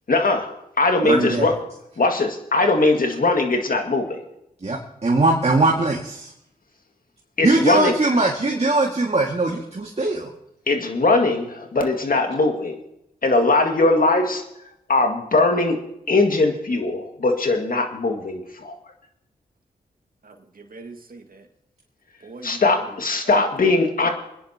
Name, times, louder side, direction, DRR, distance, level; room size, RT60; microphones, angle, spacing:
voice 1, 0.1-0.5 0.8-1.5 2.0-4.2 7.4-7.9 10.7-12.8 13.2-14.4 14.9-15.8 16.1-18.8 22.4-24.1, left 2 dB, 55° left, 3 dB, 2.1 m, -20 dB
voice 2, 1.0-1.6 4.6-6.3 7.4-10.3, right 2 dB, 40° right, -1 dB, 2.1 m, -21 dB
voice 3, 20.2-21.5 22.2-22.9 23.2-23.5, right 3 dB, 60° right, 4 dB, 1.9 m, -40 dB
24.5 x 10.5 x 2.9 m, 0.81 s
cardioid pair, 40°, 17 cm